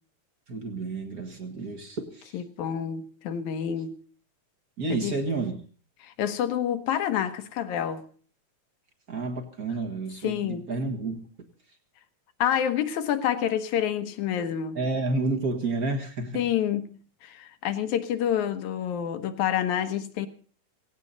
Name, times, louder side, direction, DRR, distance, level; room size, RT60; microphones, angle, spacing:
voice 1, 0.5-2.4 4.8-5.6 9.1-11.2 14.7-16.4, right 3 dB, 45° right, 1.2 m, -30 dB
voice 2, 2.3-4.0 4.9-5.2 6.0-8.0 10.2-10.7 12.4-14.8 16.3-20.3, left 9 dB, 65° left, 2.3 m, -28 dB
17.5 x 17.5 x 4.0 m
omnidirectional pair, 4.0 m